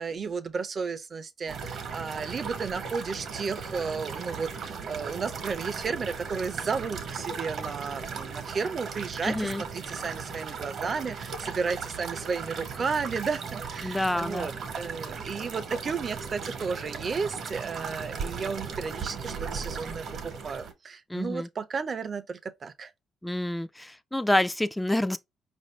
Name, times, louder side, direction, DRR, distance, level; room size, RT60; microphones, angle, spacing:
voice 1, 0.0-22.9, right 5 dB, 45° right, 0.6 m, -33 dB
sound 1, 1.5-20.7, right 5 dB, 65° right, 1.0 m, -37 dB
voice 2, 9.2-9.6 13.8-14.5 21.1-21.5 23.2-25.2, left 1 dB, 5° left, 0.4 m, -28 dB
5.0 x 2.6 x 3.1 m
cardioid pair, 90°, 0 cm